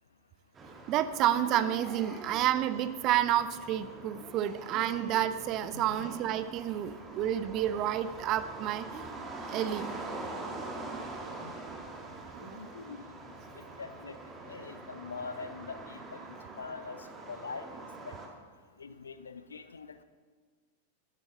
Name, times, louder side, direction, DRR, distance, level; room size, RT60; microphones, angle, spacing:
sound 1, 0.5-18.3, right 2 dB, 20° right, 1.8 m, -44 dB
voice 1, 0.9-9.0 9.5-10.0 12.3-12.8, right 11 dB, 35° right, 13 dB, 0.6 m, -30 dB
voice 2, 5.7-6.1 11.4-11.6 12.1-18.2 18.8-20.0, left 5 dB, 70° left, 12 dB, 0.6 m, -44 dB
13.0 x 11.0 x 3.9 m, 1.5 s
figure-of-eight pair, 90°, 0 cm